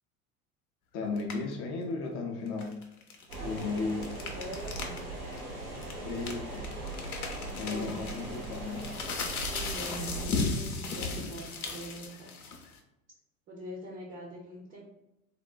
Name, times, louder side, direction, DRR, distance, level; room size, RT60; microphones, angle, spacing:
voice 1, 0.9-2.8 3.4-4.1 6.0-6.8 7.5-8.9, left 3 dB, 35° left, 1 dB, 0.4 m, -35 dB
sound 1, 1.2-1.5 2.5-5.0 5.3-5.4 5.8-12.8, left 4 dB, 75° left, 0.6 m, -36 dB
sound 2, 3.3-10.3, right 2 dB, 85° right, 0.9 m, -40 dB
voice 2, 4.3-5.0 7.4-8.0 9.5-12.3 13.5-14.9, right 1 dB, 30° right, -1 dB, 0.5 m, -43 dB
3.5 x 2.1 x 2.3 m, 0.91 s
figure-of-eight pair, 75°, 44 cm